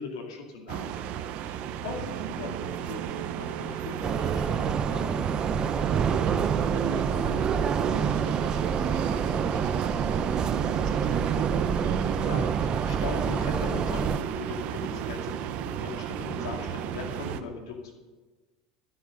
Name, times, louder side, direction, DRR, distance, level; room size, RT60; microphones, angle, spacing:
voice 1, 0.0-5.1 12.2-17.9, left 4 dB, 90° left, 2 dB, 2.4 m, -39 dB
sound 1, 0.7-17.4, right 9 dB, 55° right, 0.9 m, -33 dB
sound 2, 4.0-14.2, right 6 dB, 30° right, 0.6 m, -27 dB
voice 2, 6.1-11.2, right 8 dB, 85° right, 1 dB, 1.4 m, -45 dB
13.0 x 7.8 x 6.5 m, 1.3 s
supercardioid pair, 110°, 3 cm